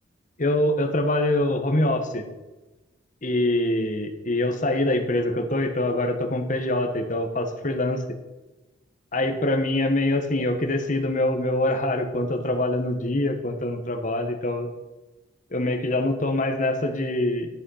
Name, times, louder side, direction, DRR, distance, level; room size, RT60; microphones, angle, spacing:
voice 1, 0.4-2.3 3.2-8.0 9.1-14.7 15.5-17.5, left 1 dB, 40° left, 4 dB, 1.2 m, -24 dB
12.0 x 6.3 x 5.7 m, 1.1 s
head